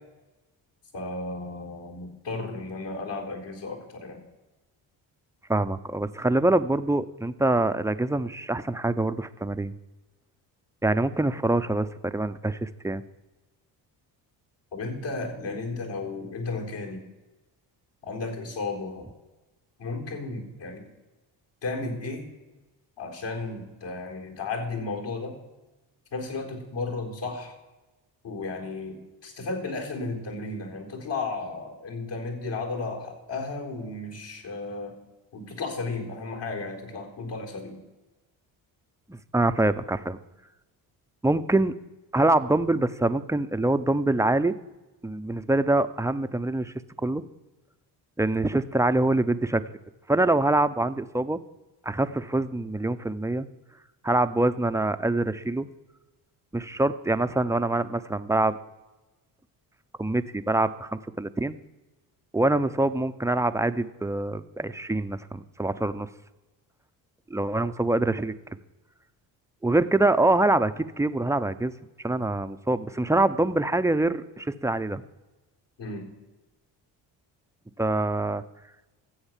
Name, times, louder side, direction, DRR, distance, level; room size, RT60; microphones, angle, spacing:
voice 1, 0.9-4.2 14.7-17.0 18.0-19.1 19.8-20.8 21.6-22.3 23.0-25.4 26.1-27.5 28.2-34.9 35.3-37.8 75.8-76.1, left 3 dB, 65° left, 0 dB, 4.3 m, -34 dB
voice 2, 5.5-9.7 10.8-13.0 39.1-40.2 41.2-41.7 42.1-44.5 45.0-47.2 48.2-49.6 50.1-51.4 51.8-53.5 54.0-55.7 56.5-58.6 60.0-61.5 62.3-66.1 67.3-68.3 69.6-71.7 72.0-75.0 77.8-78.4, right 2 dB, 5° right, 11 dB, 0.7 m, -25 dB
13.5 x 8.0 x 7.3 m, 1.1 s
supercardioid pair, 65°, 47 cm